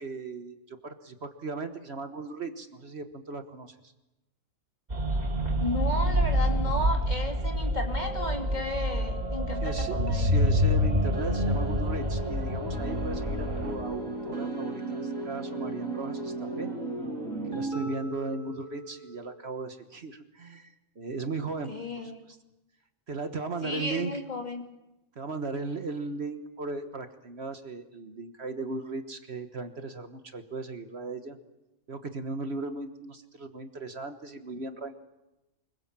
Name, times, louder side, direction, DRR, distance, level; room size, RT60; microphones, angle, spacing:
voice 1, 0.0-3.7 9.6-16.7 17.4-21.7 22.0-22.4 23.1-24.2 25.1-31.4 31.9-34.9, right 3 dB, 50° right, 8 dB, 1.5 m, -37 dB
sound 1, 4.9-13.7, equal, 30° right, 2.7 m, -27 dB
voice 2, 5.6-10.3 21.7-22.2 23.6-24.6, left 2 dB, 30° left, 2 dB, 2.7 m, -33 dB
sound 2, 11.1-19.6, right 2 dB, 75° right, 4.0 m, -36 dB
25.0 x 22.0 x 7.4 m, 0.99 s
omnidirectional pair, 1.4 m